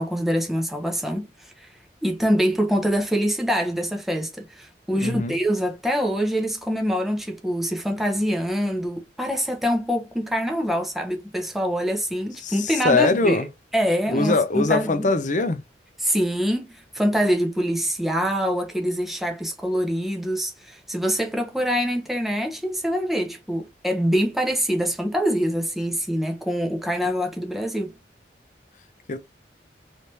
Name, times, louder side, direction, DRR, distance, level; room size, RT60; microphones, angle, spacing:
voice 1, 0.0-1.7 2.0-13.5 13.7-15.1 16.0-27.9, equal, ahead, 0.8 m, -25 dB
voice 2, 4.9-5.4 12.4-13.5 14.1-15.6 29.1-29.2, left 3 dB, 45° left, 0.6 m, -22 dB
3.3 x 3.2 x 2.8 m
head